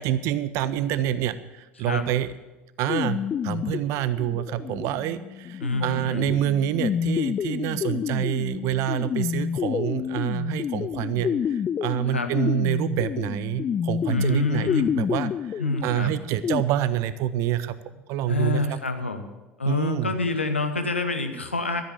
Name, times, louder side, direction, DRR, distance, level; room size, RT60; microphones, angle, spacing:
voice 1, 0.0-2.3 2.8-15.3 15.8-17.8 18.1-18.8 19.7-20.1, right 11 dB, 50° right, 14 dB, 0.6 m, -27 dB
sound 1, 2.9-16.6, left 8 dB, 30° left, 0.4 m, -29 dB
voice 2, 5.6-6.3 12.1-12.3 14.1-14.9 15.6-16.1 18.3-19.2 19.6-21.8, left 3 dB, 85° left, 7 dB, 1.0 m, -27 dB
13.5 x 7.9 x 7.4 m, 1.1 s
figure-of-eight pair, 65°, 6 cm